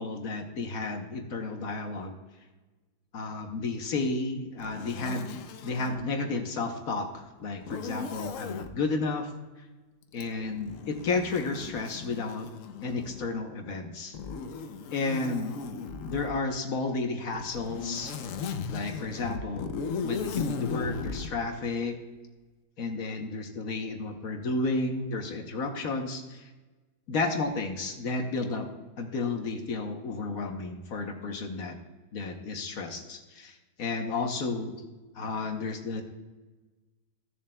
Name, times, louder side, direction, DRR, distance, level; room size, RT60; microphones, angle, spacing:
voice 1, 0.0-2.2 3.1-5.4 5.6-9.3 10.1-12.5 12.8-14.2 14.9-15.6 16.0-18.1 18.7-19.7 20.0-22.0 22.8-26.5 27.1-28.7 29.0-31.8 32.1-34.7 35.1-36.0, left 3 dB, 55° left, 4 dB, 1.2 m, -32 dB
Zipper (clothing), 4.6-6.0 7.6-8.7 10.1-13.4 14.1-16.4 17.3-21.3, left 5 dB, 75° left, 0.7 m, -37 dB
15.5 x 7.1 x 2.2 m, 1.2 s
omnidirectional pair, 2.0 m